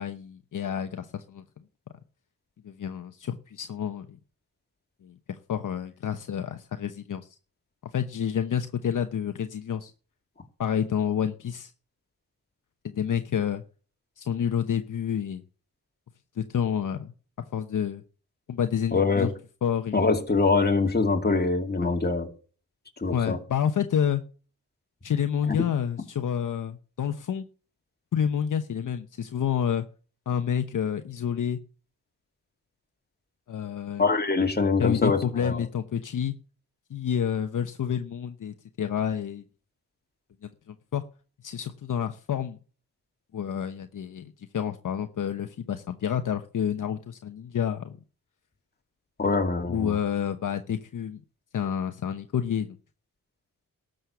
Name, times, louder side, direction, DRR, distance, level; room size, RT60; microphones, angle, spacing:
voice 1, 0.0-1.4 2.6-4.1 5.0-7.3 7.9-9.9 10.6-11.7 12.8-13.6 14.2-15.4 16.4-17.1 17.5-18.0 18.5-19.3 19.6-20.1 21.8-21.9 23.1-24.2 25.0-27.4 28.1-29.9 30.3-31.6 33.5-34.0 34.8-36.3 36.9-39.4 40.4-41.0 41.4-42.6 43.3-48.0 49.7-51.2 51.5-52.8, left 8 dB, 60° left, 0.9 m, -29 dB
voice 2, 18.9-19.3 19.9-22.3 23.0-23.4 25.5-25.6 34.0-35.6 49.2-49.9, left 3 dB, 25° left, 2.4 m, -24 dB
12.5 x 6.5 x 6.9 m
cardioid pair, 75°, 35 cm